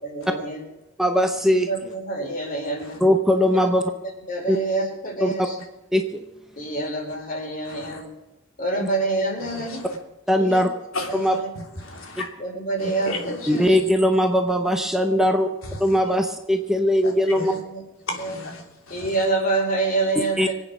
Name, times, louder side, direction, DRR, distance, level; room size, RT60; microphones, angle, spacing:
voice 1, 0.0-0.6 1.5-3.0 3.5-3.7 4.3-5.6 6.6-8.1 8.6-9.8 10.3-10.6 11.1-11.5 12.4-13.8 16.0-16.2 17.3-17.8 18.2-18.4 18.9-20.5, right 2 dB, 40° left, 1 dB, 4.3 m, -27 dB
voice 2, 1.0-1.7 3.0-3.8 4.5-4.6 5.2-5.3 5.9-6.0 10.3-10.7 11.1-11.4 13.5-15.5 15.8-17.5 20.2-20.5, equal, ahead, 4 dB, 0.7 m, -20 dB
voice 3, 7.7-8.0 9.5-10.0 10.9-11.3 11.8-12.3 12.8-13.7 15.6-15.8 17.0-17.5 18.1-19.2, left 1 dB, 85° left, 2 dB, 3.2 m, -33 dB
24.5 x 8.9 x 6.1 m, 1.0 s
head